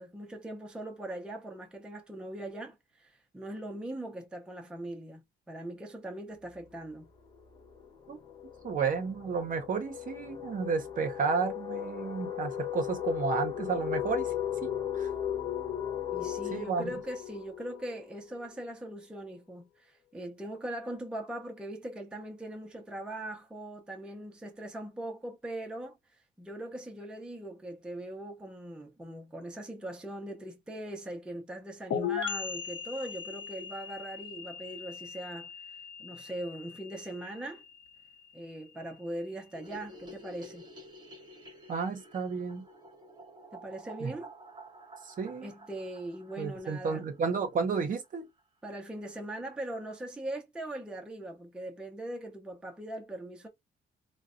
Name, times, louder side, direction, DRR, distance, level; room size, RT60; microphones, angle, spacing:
voice 1, 0.0-7.1 16.1-35.5 36.0-37.6 38.3-40.7 43.5-44.3 45.4-47.1 48.6-53.5, right 1 dB, 5° right, 0.5 m, -40 dB
sound 1, 6.5-6.7 7.0-18.6, left 10 dB, 20° left, 0.9 m, -36 dB
voice 2, 8.6-14.3 14.6-15.1 16.5-16.9 41.7-42.7 44.0-44.1 45.1-45.5 46.4-48.3, right 5 dB, 40° right, 0.7 m, -32 dB
sound 2, 31.9-39.5, left 8 dB, 70° left, 0.8 m, -39 dB
sound 3, 39.5-47.8 48.0-48.1 48.4-48.5 48.7-48.8 49.1-49.6, right 1 dB, 20° right, 1.0 m, -51 dB
3.8 x 2.1 x 2.4 m
cardioid pair, 160°, 20 cm